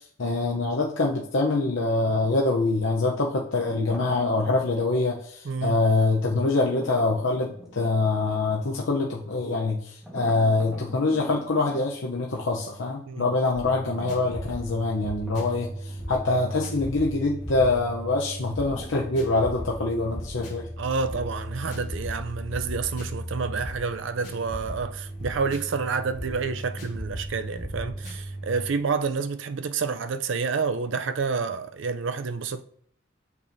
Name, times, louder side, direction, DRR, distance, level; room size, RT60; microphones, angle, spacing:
voice 1, 0.2-20.7, left 3 dB, 75° left, 0.8 m, -25 dB
sound 1, 3.6-4.9 6.5-7.9 10.0-11.9 13.6-16.0 16.3-16.4 18.6-19.3, equal, 5° right, 1.4 m, -45 dB
voice 2, 5.4-5.8 13.1-13.3 20.8-32.6, right 5 dB, 70° right, 0.5 m, -29 dB
sound 2, 13.5-28.7, equal, 55° left, 2.6 m, -36 dB
8.3 x 6.8 x 2.7 m
head